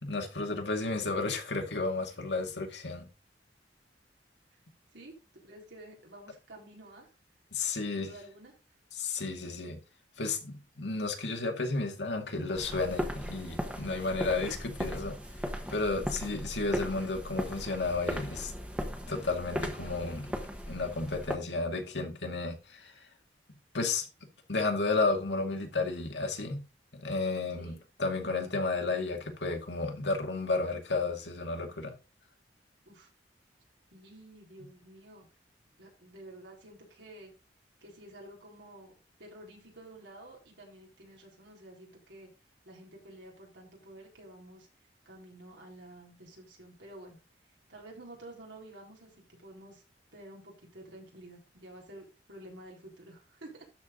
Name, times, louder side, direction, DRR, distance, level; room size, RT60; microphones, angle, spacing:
voice 1, 0.0-3.1 7.5-8.1 9.0-9.8 10.2-15.2 15.7-18.5 19.1-20.3 20.7-23.0 23.7-24.1 24.5-26.6 27.0-27.7 28.0-31.9, left 3 dB, 70° left, 2.2 m, -32 dB
voice 2, 5.4-7.1 7.8-8.5 16.1-16.5 27.6-27.8 32.9-33.1 33.9-35.3 35.8-37.3 37.8-42.3 42.6-44.7 45.1-47.2 47.7-49.8 50.1-53.7, right 1 dB, 80° right, 4.2 m, -51 dB
sound 1, 12.5-21.3, equal, 5° right, 1.3 m, -37 dB
12.5 x 4.8 x 3.8 m
head